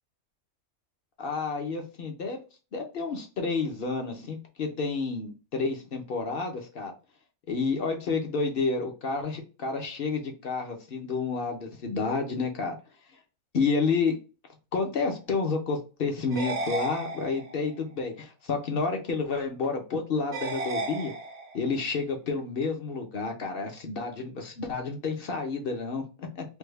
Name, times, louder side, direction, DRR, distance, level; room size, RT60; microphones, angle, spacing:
voice 1, 1.2-2.4 2.7-6.9 7.5-12.7 13.5-14.2 14.7-21.1 21.5-26.4, left 4 dB, 50° left, 4 dB, 0.7 m, -30 dB
sound 1, 16.3-17.7 20.3-21.7, right 3 dB, 55° right, 0.8 m, -34 dB
3.4 x 2.2 x 3.2 m, 0.32 s
omnidirectional pair, 1.5 m